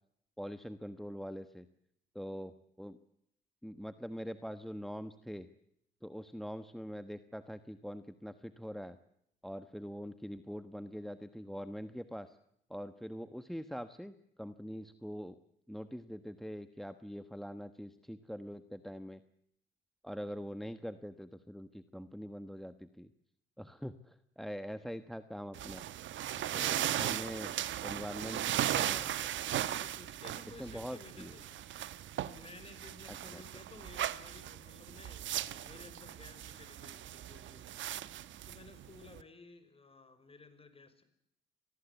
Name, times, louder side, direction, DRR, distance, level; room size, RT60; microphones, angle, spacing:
voice 1, 0.4-1.6 2.1-3.0 3.6-5.5 6.0-9.0 9.4-12.4 12.7-15.4 15.7-19.2 20.0-23.1 23.6-25.8 26.5-29.1 30.6-31.3 33.3-33.4, equal, ahead, 11 dB, 1.2 m, -43 dB
sound 1, 25.5-39.2, right 12 dB, 75° right, 1.2 m, -37 dB
voice 2, 26.2-27.5 29.0-29.4 29.8-31.6 32.2-37.7 38.4-41.0, left 3 dB, 30° left, 11 dB, 5.2 m, -56 dB
25.5 x 19.0 x 8.2 m, 0.73 s
cardioid pair, 90°, 20 cm